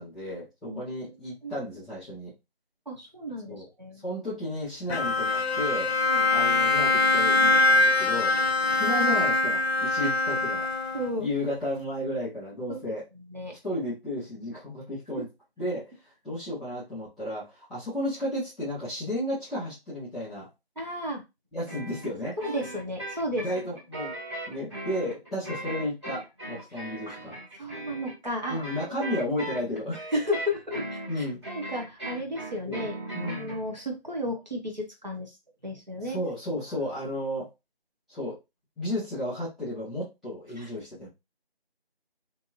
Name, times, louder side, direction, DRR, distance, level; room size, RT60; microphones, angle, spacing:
voice 1, 0.0-2.3 3.5-3.7 4.0-5.9 6.3-10.6 11.2-13.0 13.5-15.3 15.6-20.5 21.5-22.4 23.4-24.1 24.5-27.4 28.5-30.0 31.1-31.4 32.7-32.9 33.1-33.6 36.0-37.5 38.1-38.4 38.8-41.1, left 1 dB, ahead, -16 dB, 0.7 m, -33 dB
voice 2, 2.9-4.0 6.1-6.3 10.0-10.1 10.9-11.3 12.7-12.8 13.3-13.5 20.8-21.2 22.4-23.4 26.7-27.2 27.6-29.0 30.1-33.0 33.2-35.3 35.6-36.2 40.6-40.7, left 1 dB, 45° right, 1 dB, 0.7 m, -33 dB
Bowed string instrument, 4.9-11.3, left 3 dB, 75° left, 0.6 m, -23 dB
sound 1, 21.7-33.6, right 1 dB, 30° right, 1.6 m, -38 dB
3.2 x 2.6 x 2.5 m, 0.23 s
figure-of-eight pair, 175°, 31 cm